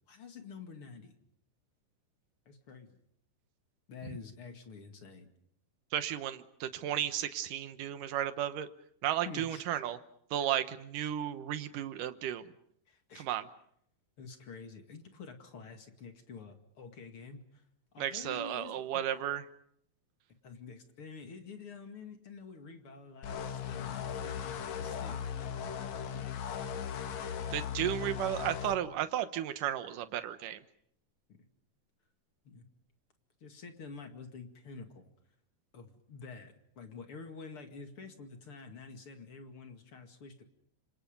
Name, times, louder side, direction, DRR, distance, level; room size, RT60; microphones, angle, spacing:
voice 1, 0.1-1.1 2.5-2.9 3.9-5.3 9.2-9.6 12.9-13.3 14.2-17.6 17.9-19.0 20.4-25.4 26.1-26.3 26.6-26.8 31.3-31.4 32.4-32.7 33.4-35.1 35.7-40.4, left 4 dB, 40° left, 6 dB, 2.2 m, -48 dB
voice 2, 5.9-8.7 9.0-10.0 10.3-12.5 13.2-13.5 18.0-19.4 27.5-30.6, right 11 dB, 80° right, 11 dB, 1.9 m, -34 dB
sound 1, 23.2-28.7, left 8 dB, 65° left, 1.8 m, -38 dB
29.5 x 26.5 x 5.3 m, 0.69 s
omnidirectional pair, 5.3 m